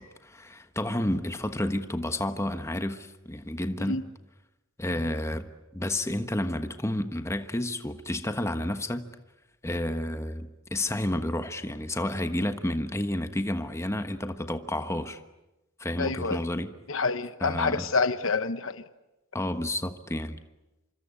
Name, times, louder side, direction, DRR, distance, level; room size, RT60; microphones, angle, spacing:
voice 1, 0.0-4.0 4.8-9.0 9.6-15.2 15.8-16.7 17.4-17.8 19.3-20.4, left 1 dB, 15° left, 8 dB, 1.2 m, -30 dB
voice 2, 16.0-16.4 16.9-18.9, left 4 dB, 65° left, 12 dB, 1.1 m, -28 dB
26.5 x 25.5 x 8.4 m, 0.98 s
head